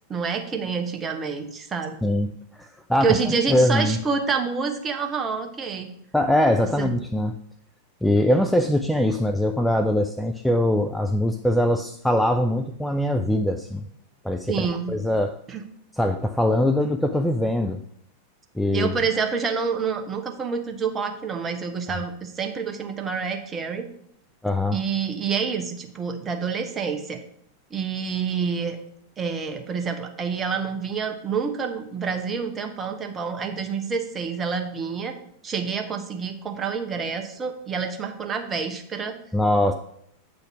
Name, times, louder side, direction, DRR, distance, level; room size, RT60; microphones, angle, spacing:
voice 1, 0.1-2.0 3.0-5.9 6.6-6.9 9.1-9.2 14.5-15.0 15.5-15.6 18.7-23.9 24.7-27.2 27.7-28.8 29.2-35.1 35.4-39.1, right 5 dB, 20° right, 5 dB, 1.0 m, -28 dB
voice 2, 2.6-3.1 3.5-4.0 6.1-7.3 8.0-13.9 14.2-15.4 16.0-17.8 18.6-19.0 24.4-24.8 39.3-39.7, left 1 dB, 5° left, 6 dB, 0.4 m, -22 dB
8.2 x 4.0 x 6.0 m, 0.71 s
figure-of-eight pair, 90°, 0 cm